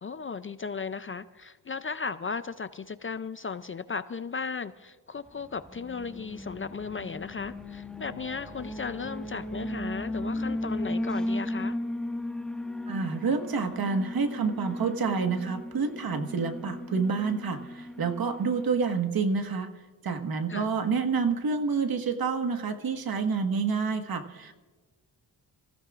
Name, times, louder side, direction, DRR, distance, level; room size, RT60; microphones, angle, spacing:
voice 1, 0.0-11.8 20.5-20.7, left 5 dB, 30° left, 0.5 m, -36 dB
Alarm, 5.6-19.0, left 1 dB, ahead, 0.9 m, -36 dB
voice 2, 12.9-19.7 20.0-24.5, right 5 dB, 55° right, 1.6 m, -28 dB
26.5 x 16.0 x 2.5 m
cardioid pair, 85°, 43 cm